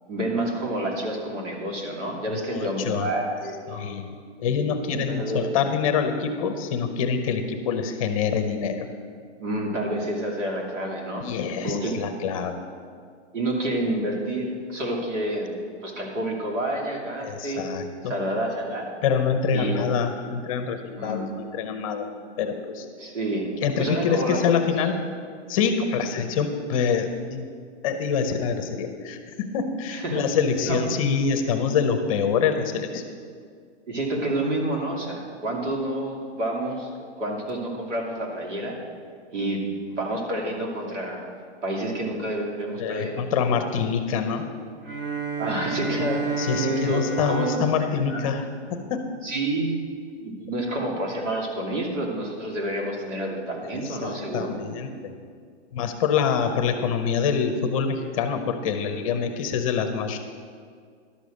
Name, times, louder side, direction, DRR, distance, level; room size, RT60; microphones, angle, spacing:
voice 1, 0.1-3.8 5.0-5.5 9.4-11.3 11.6-12.0 13.3-15.5 15.8-17.6 18.0-18.9 19.5-19.9 21.0-21.3 23.0-23.5 23.8-25.1 29.9-30.3 30.6-30.8 33.9-36.9 37.2-38.8 39.3-39.6 39.9-41.3 41.6-43.2 45.4-48.5 49.2-49.8 50.2-54.6, right 1 dB, 90° right, 0 dB, 2.8 m, -29 dB
voice 2, 2.3-3.1 3.7-8.9 11.2-12.6 17.2-18.1 19.0-22.1 22.4-22.9 23.6-25.0 25.5-27.5 27.8-33.0 42.8-44.5 46.4-48.4 48.7-49.1 53.8-55.2 55.7-60.2, left 6 dB, 30° left, 7 dB, 0.7 m, -26 dB
Bowed string instrument, 44.8-49.3, right 4 dB, 50° right, 1.5 m, -31 dB
11.5 x 6.9 x 6.4 m, 2.1 s
hypercardioid pair, 160°, 35 cm